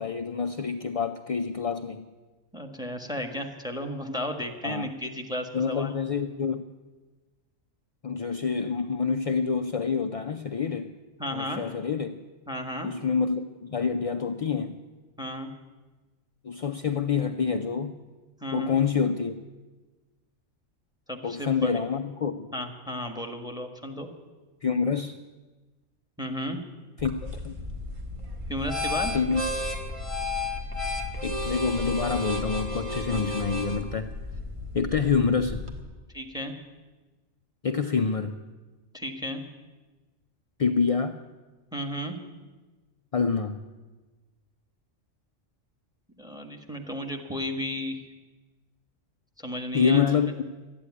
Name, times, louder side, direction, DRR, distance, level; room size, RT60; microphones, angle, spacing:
voice 1, 0.0-2.1 4.6-4.9 5.5-6.7 8.0-10.9 11.3-12.2 12.8-14.8 16.4-17.9 18.5-19.4 21.2-22.5 24.6-25.2 27.0-27.6 29.1-29.4 31.2-34.0 34.7-35.7 37.6-38.4 40.6-41.2 43.1-43.6 49.7-50.5, left 5 dB, 50° left, 6 dB, 0.4 m, -27 dB
voice 2, 2.5-6.0 11.2-11.6 12.5-12.9 15.2-15.5 18.4-18.8 21.1-21.8 22.5-24.1 26.2-26.6 28.5-29.2 33.1-33.2 35.1-35.2 36.1-36.5 38.9-39.4 41.7-42.2 46.2-48.0 49.4-50.1, left 1 dB, 5° right, 5 dB, 1.5 m, -33 dB
sound 1, 27.0-35.8, left 2 dB, 25° right, 1.5 m, -33 dB
13.0 x 9.9 x 9.6 m, 1.3 s
omnidirectional pair, 1.3 m